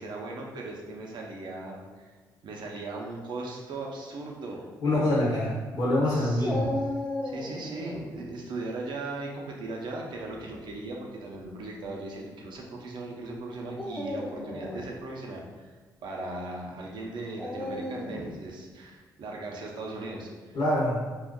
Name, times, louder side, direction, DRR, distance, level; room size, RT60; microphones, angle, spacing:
voice 1, 0.0-2.1 2.4-5.3 6.1-6.5 7.2-15.7 16.0-20.5, right 2 dB, 65° right, -1 dB, 0.6 m, -38 dB
voice 2, 4.8-6.7 20.5-21.0, left 1 dB, 55° left, -6 dB, 0.9 m, -25 dB
Dog, 6.4-8.1 10.1-10.6 11.4-11.5 13.7-14.9 17.4-18.4, left 1 dB, 15° left, 1.1 m, -34 dB
3.6 x 2.4 x 2.2 m, 1.4 s
supercardioid pair, 60°, 8 cm